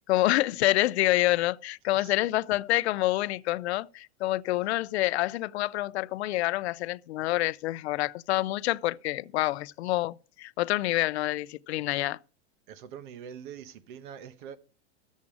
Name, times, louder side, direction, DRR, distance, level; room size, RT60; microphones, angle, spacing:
voice 1, 0.1-12.2, left 17 dB, 80° left, 0.5 m, -27 dB
voice 2, 12.7-14.6, right 8 dB, 50° right, 1.0 m, -44 dB
12.0 x 7.4 x 4.8 m
supercardioid pair, 170°, 32 cm